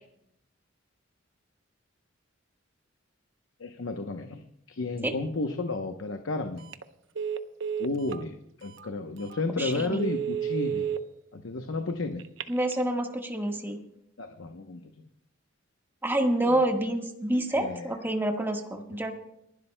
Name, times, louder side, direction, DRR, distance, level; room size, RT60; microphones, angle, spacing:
voice 1, 3.6-4.4 4.7-6.7 7.8-10.9 11.3-12.2 14.2-14.9 16.4-16.6 17.5-17.9, left 3 dB, 70° left, 5 dB, 0.9 m, -32 dB
Telephone, 6.6-6.8 7.1-8.2 8.8-8.9 9.3-9.4 9.9-11.0 12.2-12.8, right 8 dB, 65° right, 0.8 m, -31 dB
voice 2, 9.6-10.0 12.5-13.8 16.0-19.1, right 1 dB, 10° right, 3 dB, 1.4 m, -28 dB
30.0 x 11.5 x 2.2 m, 0.76 s
head